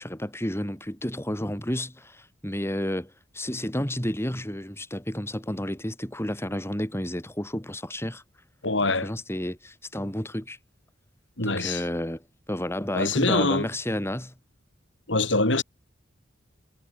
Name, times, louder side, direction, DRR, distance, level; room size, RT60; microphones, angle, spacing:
voice 1, 0.0-8.2 8.9-10.6 11.4-14.3, left 1 dB, 15° left, 4.0 m, -31 dB
voice 2, 8.6-9.1 11.4-11.8 12.9-13.7 15.1-15.6, left 2 dB, 70° left, 4.6 m, -24 dB
head